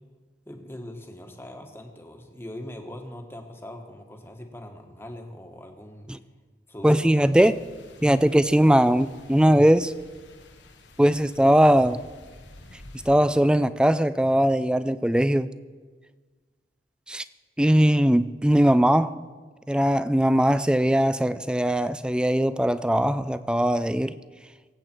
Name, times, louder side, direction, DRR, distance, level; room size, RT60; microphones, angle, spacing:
voice 1, 0.4-6.2 6.7-7.3, left 1 dB, 15° left, 3 dB, 1.4 m, -41 dB
voice 2, 6.8-7.5 8.0-9.9 11.0-12.0 13.1-15.5 17.1-17.2 17.6-19.2 19.7-24.2, equal, 5° right, 14 dB, 0.4 m, -20 dB
sound 1, 7.3-13.1, left 2 dB, 85° left, 1.6 m, -49 dB
24.0 x 8.4 x 4.5 m, 1.5 s
head